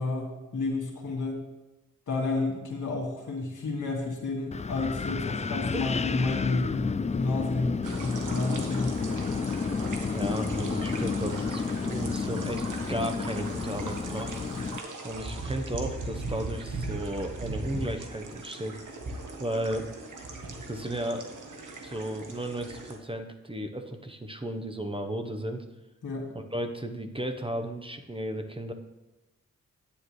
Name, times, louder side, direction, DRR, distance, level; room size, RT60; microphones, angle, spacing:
voice 1, 0.0-1.4 2.1-9.0 26.0-26.3, left 3 dB, 75° left, 0 dB, 2.1 m, -30 dB
Wind, 4.5-14.8, left 5 dB, 25° left, 0.3 m, -31 dB
sound 1, 7.8-23.0, right 2 dB, 75° right, 1.4 m, -39 dB
voice 2, 10.1-14.5 15.0-18.8 19.4-19.9 20.7-21.3 21.8-25.6 26.3-28.7, right 1 dB, 15° right, 6 dB, 1.0 m, -34 dB
9.4 x 9.1 x 3.3 m, 1.1 s
cardioid pair, 45°, 31 cm